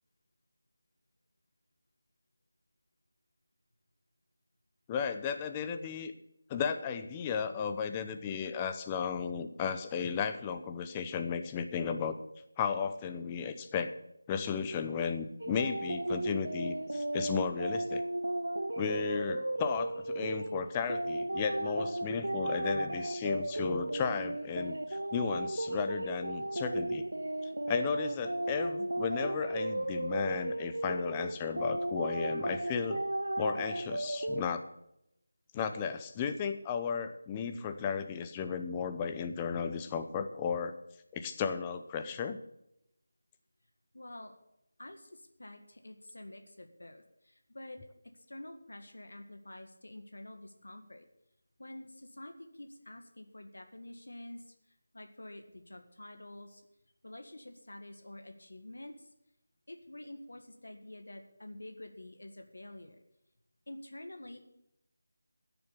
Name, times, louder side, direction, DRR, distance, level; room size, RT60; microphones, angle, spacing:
voice 1, 4.9-6.1 6.5-12.2 12.6-13.9 14.3-18.0 18.8-27.0 27.7-33.0 33.4-34.7 35.5-40.7 41.1-42.4, left 6 dB, 15° left, 8 dB, 0.7 m, -34 dB
sound 1, 15.4-34.4, right 1 dB, 90° right, 0.4 m, -35 dB
voice 2, 43.9-44.3 44.8-47.8 48.1-51.1 51.6-54.5 54.9-56.6 57.0-59.1 59.7-63.0 63.7-64.4, left 1 dB, 80° left, 5 dB, 1.7 m, -48 dB
12.0 x 7.0 x 8.4 m, 0.82 s
figure-of-eight pair, 165°, 0 cm